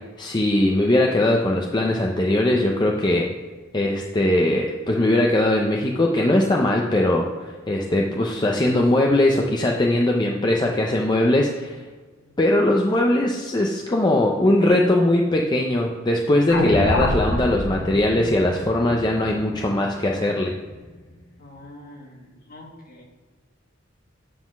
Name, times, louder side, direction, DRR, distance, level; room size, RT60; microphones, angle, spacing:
voice 1, 0.2-3.3 3.7-11.8 12.4-20.5, left 1 dB, 20° left, 0 dB, 0.6 m, -20 dB
sound 1, 16.5-20.8, left 1 dB, 70° left, 1.0 m, -26 dB
voice 2, 21.4-23.0, left 1 dB, 45° left, -1 dB, 1.8 m, -45 dB
9.5 x 3.8 x 6.0 m, 1.3 s
head